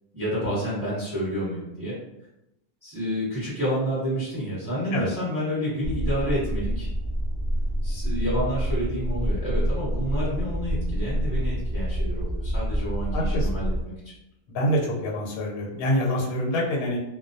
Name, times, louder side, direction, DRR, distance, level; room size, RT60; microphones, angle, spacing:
voice 1, 0.1-2.0 2.8-6.9 7.8-13.7, equal, 20° right, -9 dB, 0.6 m, -29 dB
sound 1, 5.8-13.8, equal, 60° left, 0.3 m, -27 dB
voice 2, 13.1-13.6 14.5-17.0, equal, 85° left, -2 dB, 1.1 m, -26 dB
2.4 x 2.1 x 2.5 m, 0.87 s
omnidirectional pair, 1.5 m